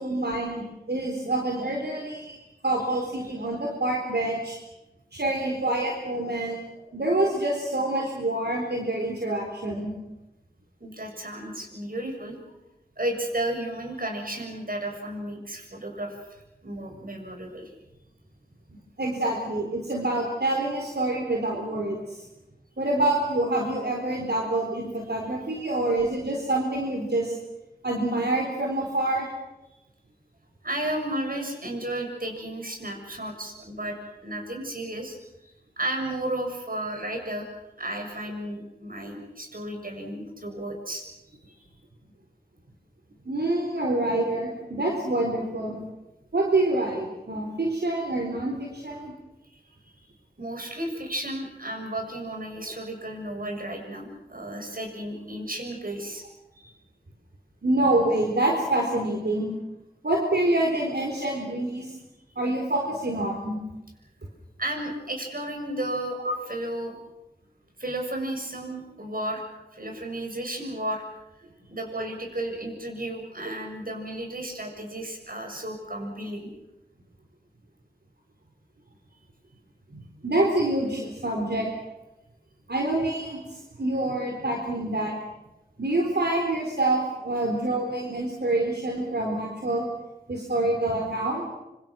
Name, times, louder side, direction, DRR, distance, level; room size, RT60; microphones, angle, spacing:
voice 1, 0.0-2.3 2.6-4.6 5.1-6.6 6.9-9.9 19.0-22.2 22.8-27.4 27.8-29.3 43.3-45.8 46.3-49.1 57.6-59.5 60.0-61.9 62.4-63.6 66.2-66.3 79.9-81.7 82.7-85.1 85.8-89.9 90.3-91.4, right 2 dB, 85° right, 0 dB, 4.1 m, -26 dB
voice 2, 10.8-12.4 13.0-17.7 29.7-29.8 30.6-35.2 35.4-37.5 37.8-41.0 41.6-41.7 49.5-50.1 50.4-56.2 56.5-56.7 64.6-66.2 66.5-66.9 67.8-69.5 69.7-71.0 71.7-76.5, right 1 dB, 60° right, 2 dB, 6.9 m, -33 dB
26.0 x 26.0 x 6.3 m, 0.97 s
wide cardioid pair, 45°, 17 cm